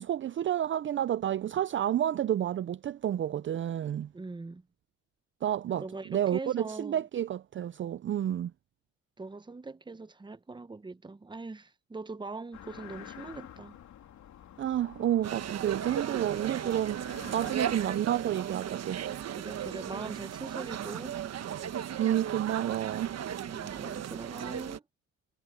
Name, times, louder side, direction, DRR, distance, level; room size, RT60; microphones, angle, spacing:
voice 1, 0.0-4.1 5.4-8.5 14.6-19.0 22.0-23.2, right 11 dB, 40° right, 0.5 m, -30 dB
voice 2, 4.1-4.6 5.8-7.0 9.2-13.8 19.4-21.2 23.5-24.8, right 3 dB, 15° right, 0.9 m, -42 dB
sound 1, 12.5-18.0, left 10 dB, 70° left, 2.9 m, -49 dB
sound 2, 15.2-24.8, right 9 dB, 55° right, 1.2 m, -36 dB
cardioid pair, 90°, 30 cm